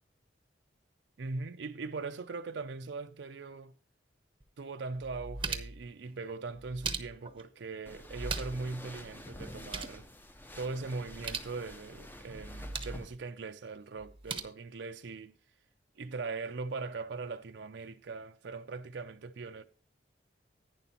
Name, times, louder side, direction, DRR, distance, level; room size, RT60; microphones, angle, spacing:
voice 1, 1.2-3.7 4.6-10.0 10.6-15.3 16.0-19.6, right 3 dB, 70° right, 0.5 m, -40 dB
sound 1, 4.4-4.5 5.0-5.9 6.6-7.4 8.1-8.7 9.0-9.1 9.4-10.0 11.1-11.5 12.4-13.0 14.0-14.4, right 4 dB, 30° right, 0.8 m, -39 dB
sound 2, 7.8-13.2, left 1 dB, 10° left, 0.6 m, -48 dB
11.0 x 9.5 x 2.9 m
head